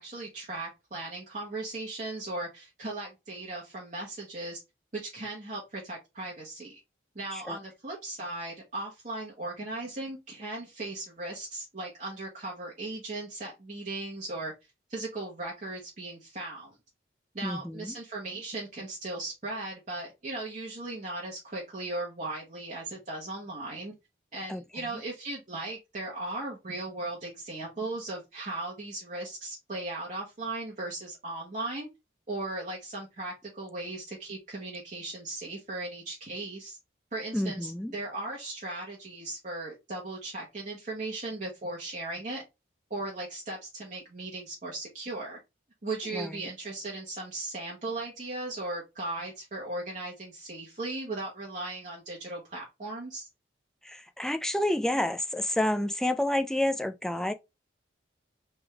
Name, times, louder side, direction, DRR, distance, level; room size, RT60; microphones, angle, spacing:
voice 1, 0.0-4.6 4.9-6.8 7.1-14.5 14.9-16.8 17.3-23.9 24.3-31.9 32.3-36.8 37.1-42.4 42.9-45.4 45.8-53.3, right 2 dB, 40° right, 1.2 m, -37 dB
voice 2, 17.4-18.0 24.5-24.9 37.3-37.9 46.1-46.5 53.8-57.3, left 1 dB, 5° left, 0.3 m, -29 dB
3.5 x 3.4 x 3.3 m
head